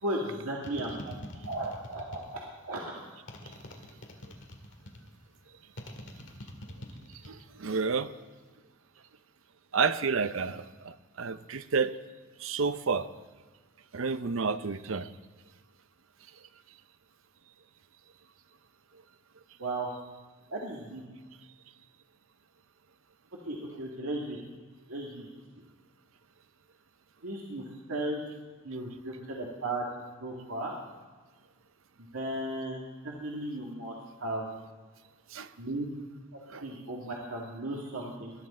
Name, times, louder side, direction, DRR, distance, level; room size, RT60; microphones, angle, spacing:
voice 1, 0.0-1.2 1.4-2.4 2.6-2.9 19.6-19.9 20.5-21.0 23.5-24.4 24.9-25.3 27.2-27.6 27.9-28.2 28.6-29.8 30.2-30.7 32.1-32.8 33.0-33.9 34.2-34.5 35.6-35.8 36.6-38.3, right 1 dB, 85° right, -3 dB, 2.1 m, -35 dB
sound 1, 0.6-2.5 3.3-5.1 5.8-7.4 7.7-8.3, left 1 dB, 60° left, 1.9 m, -44 dB
voice 2, 7.3-8.1 9.7-11.9 12.4-13.1 13.9-15.1 35.3-35.5 36.5-36.6, right 5 dB, 65° right, 12 dB, 0.7 m, -30 dB
20.0 x 12.0 x 4.3 m, 1.4 s
head